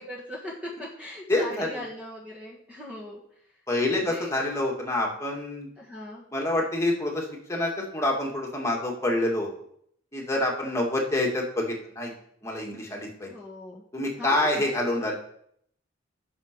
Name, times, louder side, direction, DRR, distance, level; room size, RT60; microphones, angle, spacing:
voice 1, 0.0-3.2 4.1-4.3 5.8-6.3 13.3-13.8 14.2-14.6, left 1 dB, 5° right, -4 dB, 1.5 m, -39 dB
voice 2, 1.3-1.8 3.7-5.7 6.3-9.5 10.1-12.1 12.4-13.3 13.9-15.2, left 1 dB, 15° left, -1 dB, 2.0 m, -27 dB
12.0 x 6.3 x 5.2 m, 0.69 s
head